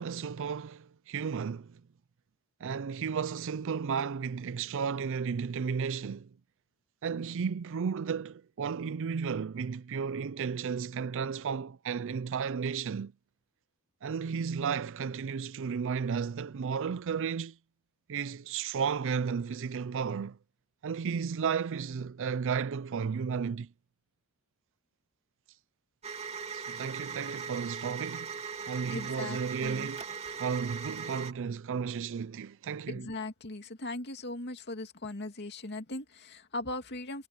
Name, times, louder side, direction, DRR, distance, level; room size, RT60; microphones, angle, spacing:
voice 1, 0.0-1.8 2.6-6.3 7.0-13.1 14.0-17.6 18.1-20.4 20.8-23.7 26.5-28.3 28.7-30.0 30.3-33.1, right 6 dB, 65° right, 0.4 m, -33 dB
sound 1, 26.0-31.3, right 6 dB, 30° right, 3.2 m, -39 dB
voice 2, 28.9-29.9 32.9-37.3, left 2 dB, 50° left, 2.5 m, -39 dB
head